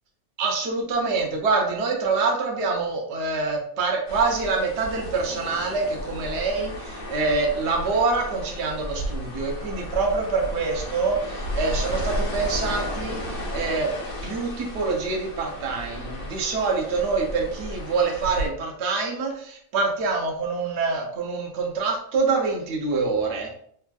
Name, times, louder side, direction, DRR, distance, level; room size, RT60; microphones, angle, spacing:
voice 1, 0.4-13.9 14.2-23.5, right 4 dB, 60° right, 0 dB, 0.8 m, -25 dB
sound 1, 4.1-18.5, equal, 80° left, 1.2 m, -33 dB
3.2 x 2.4 x 2.2 m, 0.63 s
omnidirectional pair, 1.5 m